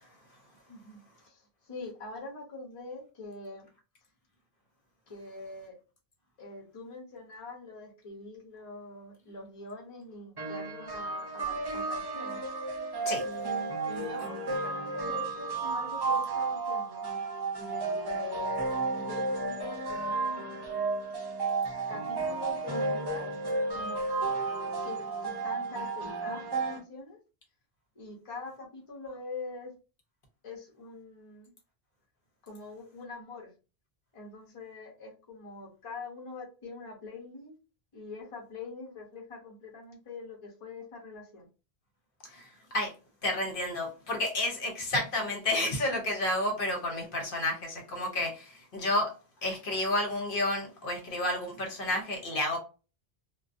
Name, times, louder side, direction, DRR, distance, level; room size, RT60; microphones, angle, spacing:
voice 1, 0.7-3.7 5.1-5.8 6.4-12.5 13.2-17.3 17.6-18.6 18.9-20.5 21.9-23.3 23.7-24.0 24.8-27.2 28.0-29.7 30.4-31.5 32.4-33.5 34.1-37.5 37.9-41.5, left 3 dB, 35° left, 0.7 m, -44 dB
sound 1, 10.4-26.8, right 3 dB, 35° right, 0.4 m, -32 dB
voice 2, 42.3-42.9 43.2-49.1 49.4-52.6, left 1 dB, 60° left, 0.9 m, -31 dB
2.5 x 2.2 x 2.4 m
omnidirectional pair, 1.0 m